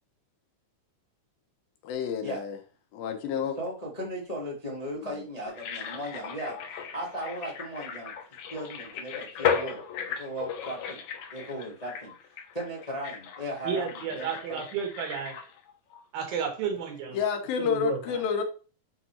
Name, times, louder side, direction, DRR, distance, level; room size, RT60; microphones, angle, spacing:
voice 1, 1.8-2.6 2.9-3.6 4.9-5.2 17.1-18.4, left 7 dB, 85° left, 2.9 m, -29 dB
voice 2, 3.6-6.5 6.9-8.1 8.5-9.8 10.2-11.0 11.3-12.1 12.5-13.9 14.1-14.6, right 1 dB, 25° left, 0.7 m, -36 dB
sound 1, 5.5-16.0 16.3-16.4, left 7 dB, 70° left, 2.2 m, -36 dB
voice 3, 13.6-15.3 16.1-17.2 17.6-18.2, right 7 dB, 80° right, 3.3 m, -32 dB
7.9 x 3.7 x 4.4 m
omnidirectional pair, 4.1 m